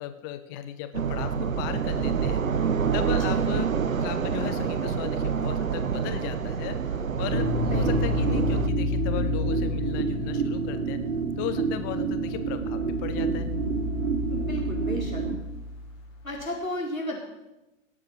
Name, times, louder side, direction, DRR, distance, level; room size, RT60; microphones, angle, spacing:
voice 1, 0.0-2.4 2.9-3.7 4.0-11.0 11.4-13.5, left 12 dB, 15° left, 10 dB, 0.4 m, -36 dB
sound 1, 0.9-8.7, right 6 dB, 80° right, 0.8 m, -27 dB
voice 2, 3.2-3.6 7.7-7.9 14.3-15.2 16.2-17.2, left 1 dB, 90° left, -2 dB, 4.2 m, -34 dB
sound 2, 7.0-10.7 12.0-16.4, left 2 dB, 35° left, 4.1 m, -33 dB
sound 3, 7.3-15.3, right 3 dB, 55° right, 3.7 m, -29 dB
18.0 x 7.2 x 6.2 m, 1.0 s
figure-of-eight pair, 110°, 40 cm